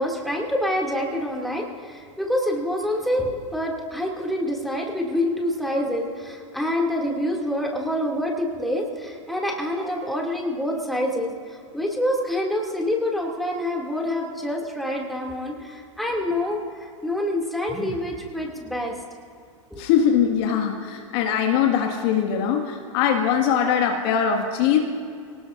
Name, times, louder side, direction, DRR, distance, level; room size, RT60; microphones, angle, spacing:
voice 1, 0.0-19.0 19.7-19.8, left 1 dB, ahead, -1 dB, 2.4 m, -26 dB
voice 2, 19.8-24.8, left 8 dB, 50° left, 2 dB, 1.8 m, -21 dB
24.5 x 18.5 x 2.6 m, 2.3 s
hypercardioid pair, 105°, 17 cm